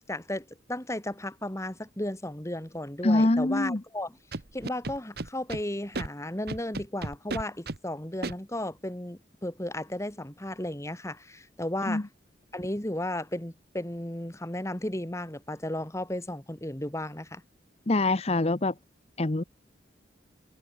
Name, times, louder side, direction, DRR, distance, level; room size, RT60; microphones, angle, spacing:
voice 1, 0.1-4.2 4.5-12.1 12.5-17.4, left 1 dB, 15° left, 1.9 m, -34 dB
voice 2, 3.0-3.8 11.9-12.0 17.9-18.7 19.2-19.4, left 2 dB, 35° left, 0.9 m, -24 dB
Scratching (performance technique), 4.3-5.6 5.9-6.1 6.5-7.8 8.2-8.3, right 2 dB, 55° right, 1.2 m, -34 dB
head